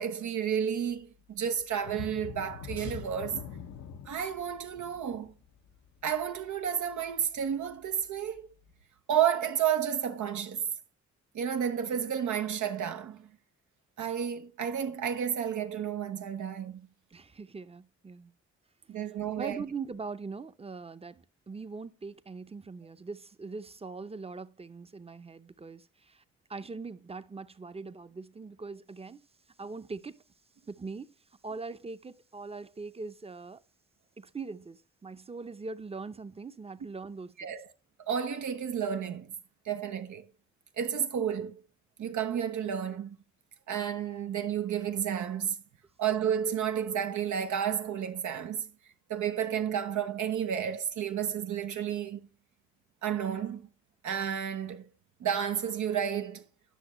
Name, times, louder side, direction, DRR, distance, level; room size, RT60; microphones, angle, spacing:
voice 1, 0.0-3.5 4.1-5.3 6.0-8.5 9.1-10.6 11.3-13.3 14.0-16.9 18.9-19.6 37.4-37.7 38.1-39.3 39.7-40.2 40.8-41.6 42.0-43.2 43.7-45.6 46.0-48.7 49.1-52.3 53.0-53.7 54.0-54.9 55.2-56.4, right 8 dB, 80° right, 0.7 m, -31 dB
sound 1, 1.8-7.3 7.7-7.9 8.4-8.5, left 6 dB, 75° left, 0.7 m, -44 dB
voice 2, 17.1-18.3 19.4-26.2 26.5-29.3 29.6-30.2 30.7-31.1 31.4-33.6 34.2-37.6, right 4 dB, 20° right, 0.6 m, -41 dB
10.0 x 5.9 x 3.0 m
supercardioid pair, 50°, 29 cm